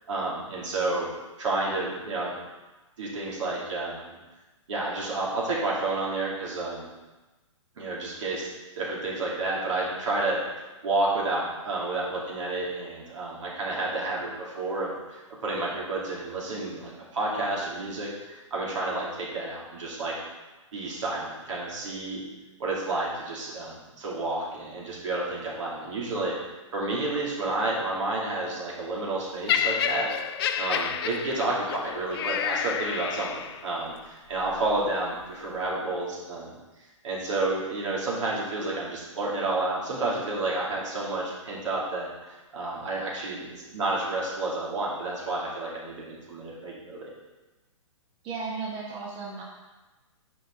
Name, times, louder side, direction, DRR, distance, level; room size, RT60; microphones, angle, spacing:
voice 1, 0.1-1.1 1.4-2.3 3.0-4.2 4.7-6.8 7.8-8.5 8.8-20.2 20.7-22.2 22.6-26.3 26.7-30.1 30.6-36.5 37.0-47.1, right 2 dB, 65° right, -4 dB, 2.7 m, -30 dB
Laughter, 29.5-33.7 34.5-34.7, left 8 dB, 50° left, 0.5 m, -29 dB
voice 2, 48.2-49.4, right 4 dB, 30° right, -4 dB, 1.3 m, -34 dB
9.8 x 5.1 x 3.8 m, 1.2 s
hypercardioid pair, 130°, 17 cm